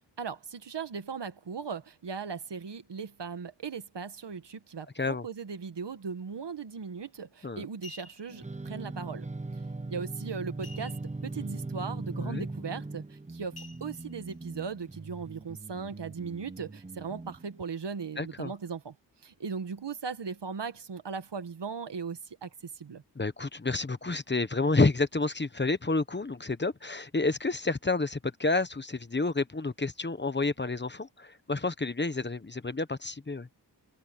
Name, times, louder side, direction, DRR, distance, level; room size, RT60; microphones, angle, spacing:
voice 1, 0.2-9.3 9.9-11.0 11.2-18.9 19.2-23.0, right 5 dB, 80° right, 1.6 m, -38 dB
voice 2, 5.0-5.3 7.4-7.6 12.2-12.4 18.2-18.5 23.2-33.5, left 3 dB, 25° left, 1.0 m, -29 dB
sound 1, 7.0-7.2 7.6-8.4 10.6-11.3 11.6-11.7 12.2-12.5 13.6-14.3 14.9-15.0, left 3 dB, 60° left, 1.9 m, -50 dB
sound 2, 8.3-17.6, right 2 dB, 15° right, 0.7 m, -40 dB
wide cardioid pair, 105°, 41 cm